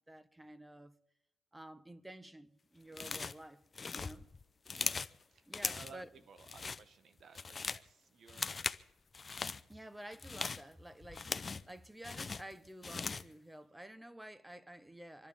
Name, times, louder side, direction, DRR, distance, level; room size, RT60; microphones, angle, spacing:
voice 1, 0.1-1.0 1.5-4.3 5.5-6.1 9.7-15.3, right 1 dB, 10° right, 0.9 m, -51 dB
sound 1, 2.9-3.4 3.7-5.2 5.5-6.0 6.4-6.8 7.2-7.9 8.3-8.8 9.1-9.6 10.1-11.7 12.0-13.3, left 4 dB, 30° left, 0.6 m, -39 dB
voice 2, 5.3-8.7, right 5 dB, 60° right, 1.0 m, -57 dB
27.0 x 12.0 x 3.6 m
cardioid pair, 90°, 0 cm